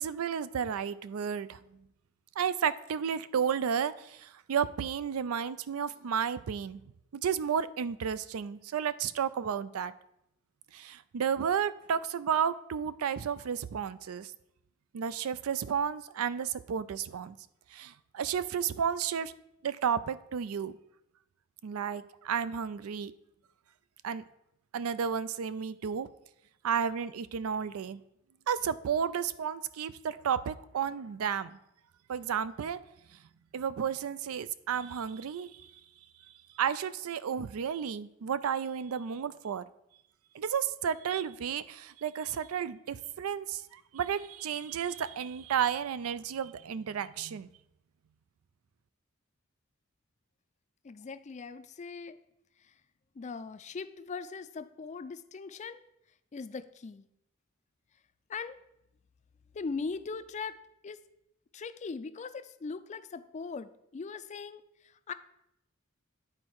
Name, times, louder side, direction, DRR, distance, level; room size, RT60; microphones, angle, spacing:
voice 1, 0.0-1.6 2.4-6.8 7.1-9.9 10.7-14.3 14.9-17.4 17.7-19.3 19.6-20.8 21.6-23.1 24.0-24.2 24.7-26.1 26.6-28.0 28.5-31.6 32.1-32.8 33.5-35.7 36.6-39.7 40.3-47.5, right 7 dB, 90° right, 15 dB, 0.4 m, -32 dB
voice 2, 50.8-52.2 53.2-55.8 56.3-57.1 58.3-58.5 59.5-60.6 60.8-61.0 61.5-64.6 65.1-65.2, left 4 dB, 35° left, 12 dB, 0.4 m, -40 dB
9.7 x 4.2 x 4.6 m, 0.80 s
head